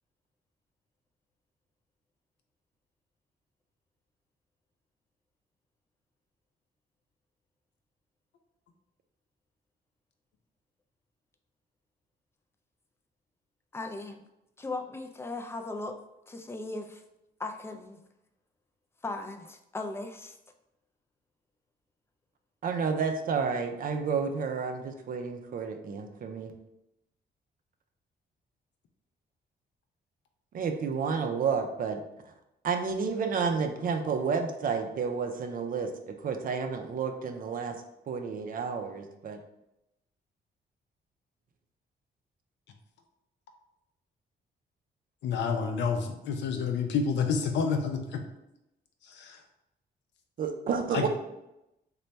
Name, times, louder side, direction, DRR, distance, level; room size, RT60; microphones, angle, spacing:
voice 1, 13.7-14.2 14.6-16.0 16.3-17.0 17.4-18.0 19.0-20.4, left 2 dB, 15° left, 5 dB, 0.3 m, -37 dB
voice 2, 22.6-26.5 30.5-32.0 32.6-37.7 38.1-39.4 50.4-51.1, right 5 dB, 50° right, 5 dB, 0.5 m, -30 dB
voice 3, 45.2-48.2 49.0-49.4 50.9-51.1, left 5 dB, 85° left, 4 dB, 0.6 m, -29 dB
3.2 x 2.2 x 4.0 m, 0.88 s
cardioid pair, 115°, 18 cm